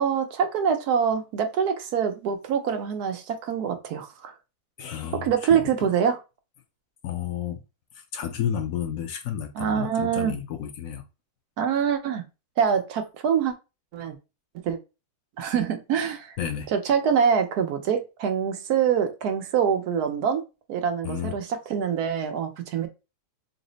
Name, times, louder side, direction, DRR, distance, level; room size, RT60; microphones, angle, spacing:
voice 1, 0.0-4.3 5.2-6.2 9.5-10.3 11.6-12.2 12.6-13.5 13.9-14.2 14.6-14.8 15.4-16.4 16.7-20.4 20.7-22.9, right 7 dB, 80° right, 1.2 m, -25 dB
voice 2, 4.8-5.9 7.0-7.6 8.1-11.0 16.4-16.7 21.0-21.3, left 9 dB, 65° left, 1.0 m, -31 dB
4.0 x 2.1 x 3.8 m
omnidirectional pair, 1.6 m